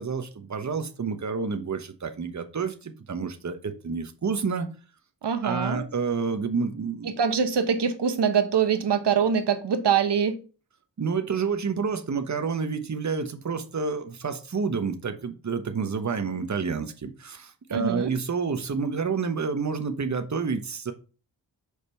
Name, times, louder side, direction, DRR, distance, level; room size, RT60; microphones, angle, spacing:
voice 1, 0.0-4.7 5.4-7.1 11.0-20.9, right 5 dB, 40° right, 1.1 m, -29 dB
voice 2, 5.2-5.8 7.0-10.4 17.7-18.1, right 7 dB, 75° right, 1.1 m, -24 dB
6.5 x 5.1 x 4.3 m
wide cardioid pair, 70°, 42 cm